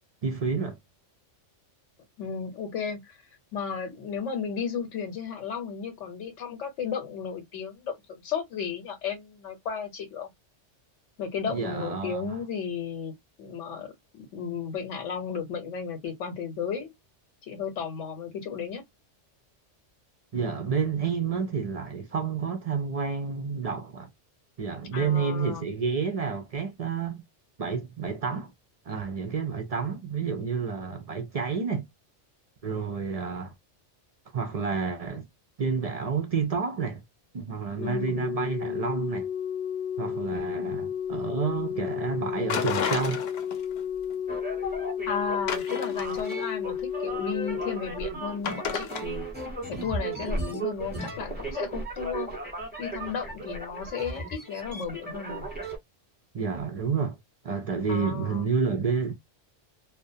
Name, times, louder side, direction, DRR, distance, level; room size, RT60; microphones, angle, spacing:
voice 1, 0.2-0.8 11.5-12.4 20.3-24.1 24.6-27.2 27.6-28.5 28.9-31.9 32.6-33.5 34.3-35.2 35.6-37.0 37.3-39.3 40.0-43.2 56.3-57.2 57.4-59.1, right 5 dB, 55° right, 0.4 m, -29 dB
voice 2, 2.2-3.2 3.5-10.3 11.2-13.1 13.4-16.9 17.4-18.8 24.9-25.7 37.8-38.2 45.1-49.2 49.7-52.5 52.8-55.5 57.9-58.5, left 6 dB, 90° left, 1.1 m, -34 dB
Organ, 37.8-48.6 49.8-50.0, left 8 dB, 15° left, 0.4 m, -33 dB
sound 1, 42.5-43.8 44.1-44.2 45.5-46.5 48.4-49.0, left 7 dB, 65° left, 0.8 m, -31 dB
sound 2, 44.3-55.8, right 2 dB, 10° right, 0.9 m, -36 dB
2.4 x 2.1 x 2.5 m
omnidirectional pair, 1.2 m